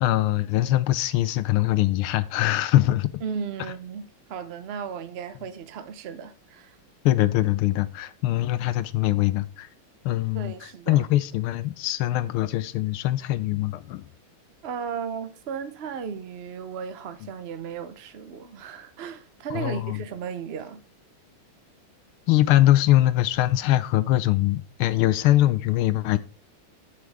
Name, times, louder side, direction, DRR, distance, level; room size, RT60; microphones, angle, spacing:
voice 1, 0.0-3.2 7.0-9.7 10.0-14.1 19.5-20.0 22.3-26.2, left 15 dB, 90° left, 1.5 m, -22 dB
voice 2, 3.2-6.8 10.3-11.1 14.6-20.8, right 7 dB, 80° right, 0.5 m, -35 dB
8.1 x 8.0 x 3.5 m
omnidirectional pair, 2.3 m